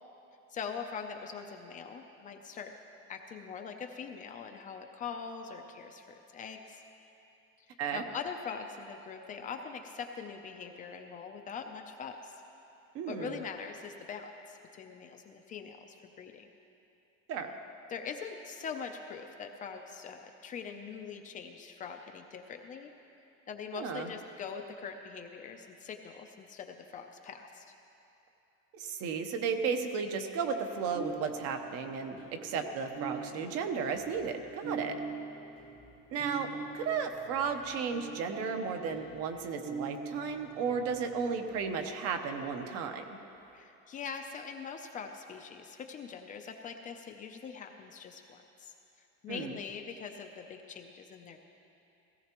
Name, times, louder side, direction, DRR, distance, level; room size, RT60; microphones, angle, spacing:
voice 1, 0.5-2.7 3.1-6.1 6.3-6.8 7.9-12.4 13.1-16.5 17.9-22.9 23.5-27.7 43.5-48.7 49.2-51.4, left 6 dB, 25° left, 5 dB, 0.5 m, -42 dB
voice 2, 12.9-13.4 17.3-17.5 23.7-24.1 28.7-35.0 36.1-36.5 36.7-43.0 49.3-49.6, right 5 dB, 55° right, 6 dB, 0.9 m, -34 dB
sound 1, 30.9-42.6, right 5 dB, 80° right, 1.9 m, -44 dB
17.5 x 15.5 x 3.0 m, 2.9 s
cardioid pair, 180°, 29 cm